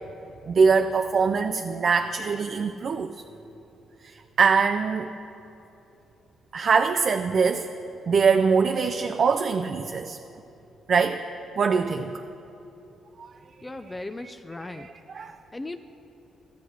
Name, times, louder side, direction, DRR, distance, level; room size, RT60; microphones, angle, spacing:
voice 1, 0.5-3.1 4.0-5.1 6.5-7.7 8.1-10.2 10.9-11.2 11.6-12.1 13.2-13.3 14.7-15.3, right 5 dB, 55° right, 6 dB, 0.4 m, -23 dB
voice 2, 13.6-14.9 15.5-15.8, left 2 dB, 25° left, 8 dB, 0.4 m, -37 dB
13.0 x 8.2 x 4.7 m, 2.9 s
supercardioid pair, 60°, 0 cm